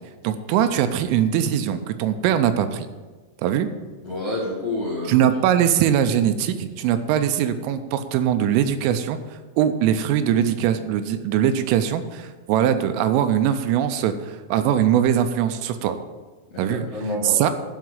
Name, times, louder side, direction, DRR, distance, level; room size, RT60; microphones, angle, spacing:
voice 1, 0.2-2.9 3.4-3.7 5.1-9.2 9.6-16.0 16.6-16.9 17.2-17.5, right 9 dB, 85° right, 9 dB, 3.1 m, -21 dB
voice 2, 4.0-5.2 16.5-17.4, left 2 dB, 50° left, -6 dB, 1.9 m, -28 dB
12.0 x 4.6 x 7.9 m, 1.3 s
omnidirectional pair, 5.8 m